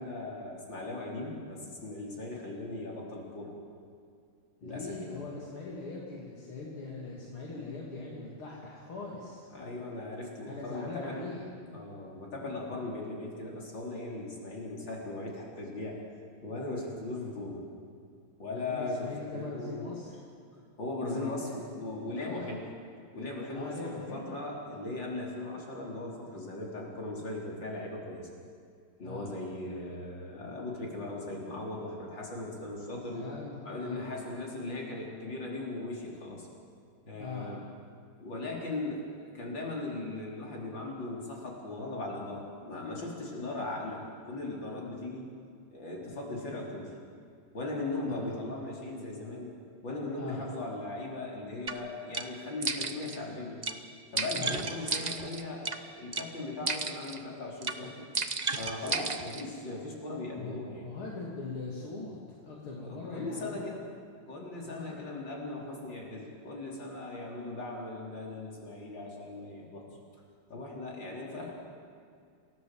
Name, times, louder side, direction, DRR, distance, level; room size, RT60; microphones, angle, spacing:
voice 1, 0.0-3.5 4.6-5.2 9.5-11.3 11.7-16.0 16.4-17.6 18.4-19.9 20.8-22.7 23.1-28.3 29.0-33.3 33.6-36.5 37.1-37.6 38.2-45.3 45.7-46.9 47.5-49.5 49.8-53.6 54.1-58.1 58.6-60.9 62.8-63.8 64.3-69.9 70.5-71.5, left 2 dB, 55° left, -2 dB, 5.0 m, -38 dB
voice 2, 4.6-9.5 10.5-11.4 18.5-20.2 21.0-21.6 22.1-22.5 23.5-24.3 29.0-29.3 33.1-34.1 37.2-37.6 48.1-48.3 50.2-50.5 54.3-54.7 60.3-63.6 64.6-65.0, left 3 dB, 70° left, -4 dB, 3.8 m, -41 dB
sound 1, 51.7-51.8 52.1-52.3 52.6-53.2 53.6-53.8 54.2-55.8 56.1-56.3 56.7-57.2 57.6-57.8 58.1-59.4, right 4 dB, 40° right, 0.6 m, -33 dB
29.0 x 17.0 x 7.9 m, 2.4 s
omnidirectional pair, 2.4 m